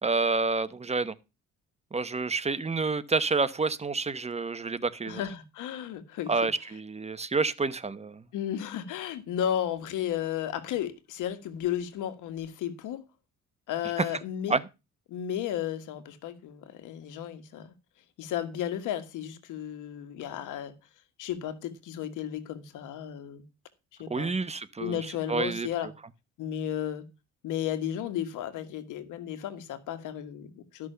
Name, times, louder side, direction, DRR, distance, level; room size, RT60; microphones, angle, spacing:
voice 1, 0.0-1.1 1.9-5.2 6.3-8.2 14.5-14.6 24.1-25.0 25.3-25.7, right 4 dB, 20° right, 1.0 m, -28 dB
voice 2, 5.0-6.5 8.3-13.0 13.7-14.6 15.1-17.7 18.2-20.7 21.2-23.4 24.0-24.3 24.8-25.9 26.4-27.1 27.4-30.9, left 10 dB, 90° left, 1.7 m, -34 dB
13.0 x 6.2 x 5.7 m
cardioid pair, 90°, 30 cm